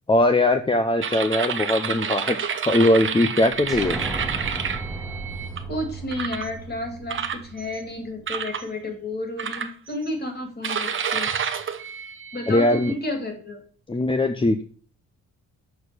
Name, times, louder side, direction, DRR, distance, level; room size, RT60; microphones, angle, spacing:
voice 1, 0.1-2.4 2.6-4.0 12.5-12.9 13.9-14.6, left 1 dB, 15° left, 7 dB, 0.6 m, -20 dB
sound 1, 1.0-5.6 6.1-6.5 7.1-7.8 8.3-8.7 9.4-10.1 10.6-13.0, right 7 dB, 40° right, 0.8 m, -29 dB
sound 2, 3.5-8.7, right 5 dB, 75° right, 1.5 m, -39 dB
sound 3, 3.7-7.4, right 1 dB, ahead, 1.3 m, -35 dB
voice 2, 5.7-11.3 12.3-13.6, left 1 dB, 30° left, 5 dB, 2.3 m, -31 dB
6.7 x 4.3 x 6.7 m, 0.43 s
cardioid pair, 110°, 31 cm